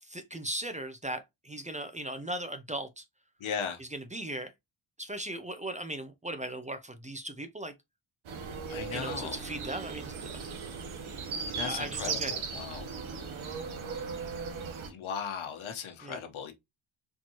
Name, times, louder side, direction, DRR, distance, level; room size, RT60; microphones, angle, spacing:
voice 1, 0.0-3.0 3.8-4.5 5.0-7.7 8.9-10.6 11.7-12.4 16.0-16.2, right 1 dB, 15° right, 0.5 m, -38 dB
voice 2, 3.4-3.8 8.7-9.4 11.5-12.9 14.9-16.5, left 7 dB, 80° left, 1.1 m, -37 dB
sound 1, 8.2-14.9, right 5 dB, 80° right, 1.2 m, -37 dB
4.5 x 2.7 x 2.9 m
wide cardioid pair, 120°, 47 cm